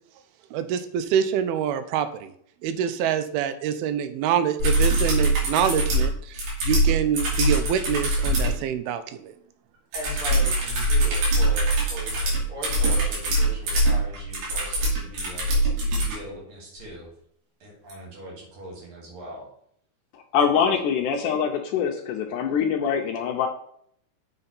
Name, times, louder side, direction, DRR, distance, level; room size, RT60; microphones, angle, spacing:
voice 1, 0.5-2.3 2.6-9.3, right 9 dB, 90° right, 11 dB, 2.5 m, -26 dB
sound 1, 4.6-8.6 9.9-16.2 17.9-18.0, right 1 dB, 70° right, 4.4 m, -23 dB
voice 2, 9.9-17.1 17.6-19.5, equal, 35° right, -3 dB, 3.3 m, -40 dB
voice 3, 20.3-23.5, left 7 dB, 80° left, 3 dB, 1.9 m, -24 dB
7.6 x 6.0 x 4.1 m, 0.66 s
omnidirectional pair, 4.4 m